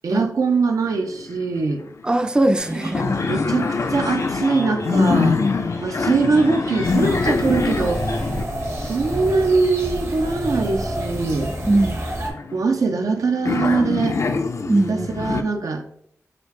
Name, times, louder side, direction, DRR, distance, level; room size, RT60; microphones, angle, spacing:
voice 1, 0.0-1.8 3.0-5.4 5.8-8.0 8.9-11.5 12.5-14.2 14.9-15.8, right 4 dB, 85° right, 4 dB, 0.5 m, -22 dB
sound 1, 0.9-1.6 1.9-2.0 2.3-10.5 11.2-13.1 13.4-15.4, left 4 dB, 60° left, 0.4 m, -25 dB
voice 2, 2.0-3.1 11.7-12.1 14.7-15.1, right 2 dB, 15° right, 8 dB, 0.3 m, -20 dB
sound 2, 2.6-8.3, left 1 dB, 85° left, 1.2 m, -38 dB
sound 3, 6.8-12.3, right 1 dB, 55° right, 0.9 m, -29 dB
5.0 x 2.4 x 3.1 m, 0.67 s
wide cardioid pair, 60°, 6 cm